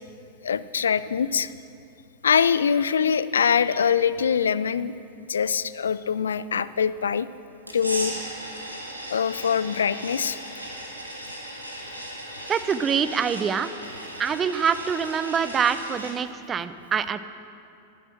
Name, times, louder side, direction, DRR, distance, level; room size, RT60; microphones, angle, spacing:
voice 1, 0.4-1.5 2.2-4.9 5.3-7.3 7.7-8.1 9.1-10.4, left 7 dB, 70° left, 16 dB, 0.3 m, -23 dB
sound 1, 7.7-16.1, right 1 dB, 85° right, 1.6 m, -37 dB
voice 2, 12.5-13.7 14.2-17.2, right 7 dB, 25° right, 13 dB, 0.5 m, -25 dB
12.5 x 9.9 x 7.5 m, 2.6 s
figure-of-eight pair, 90°, 0 cm